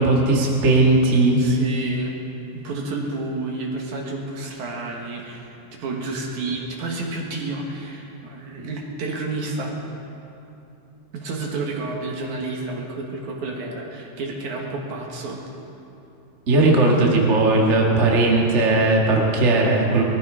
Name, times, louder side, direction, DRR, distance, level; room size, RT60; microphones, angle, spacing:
voice 1, 0.0-1.4 16.5-20.0, right 2 dB, 35° right, -1 dB, 1.1 m, -17 dB
voice 2, 1.4-2.2 2.5-9.8 11.1-15.4, right 2 dB, 60° right, 0 dB, 2.7 m, -30 dB
19.5 x 14.0 x 5.0 m, 2.8 s
omnidirectional pair, 4.3 m